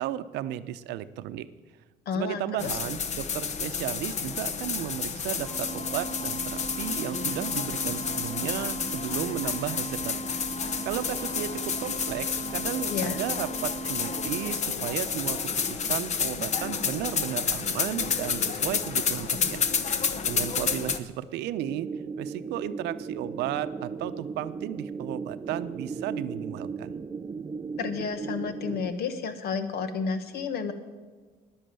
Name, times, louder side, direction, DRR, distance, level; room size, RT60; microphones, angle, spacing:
voice 1, 0.0-1.5 2.1-10.4 10.8-19.7 20.2-21.9 22.2-27.0, right 12 dB, 85° right, 13 dB, 0.7 m, -34 dB
voice 2, 2.0-2.7 12.9-13.2 27.8-30.7, left 5 dB, 70° left, 10 dB, 1.4 m, -31 dB
sound 1, 2.6-21.0, left 6 dB, 45° left, 0.9 m, -30 dB
sound 2, 5.4-14.4, right 3 dB, ahead, 4.7 m, -38 dB
sound 3, 21.6-28.9, right 5 dB, 20° right, 0.4 m, -36 dB
10.5 x 10.0 x 7.6 m, 1.4 s
cardioid pair, 110°, 17 cm